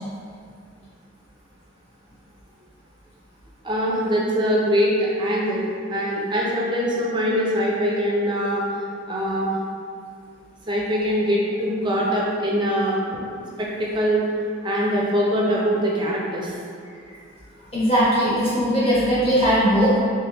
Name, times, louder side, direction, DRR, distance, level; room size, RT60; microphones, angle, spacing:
voice 1, 3.6-8.6 9.1-9.5 10.7-13.0 13.6-14.3 14.6-16.5, equal, 20° right, -4 dB, 0.5 m, -23 dB
voice 2, 17.7-20.0, equal, 25° left, -10 dB, 1.1 m, -19 dB
3.6 x 3.4 x 2.9 m, 2.3 s
head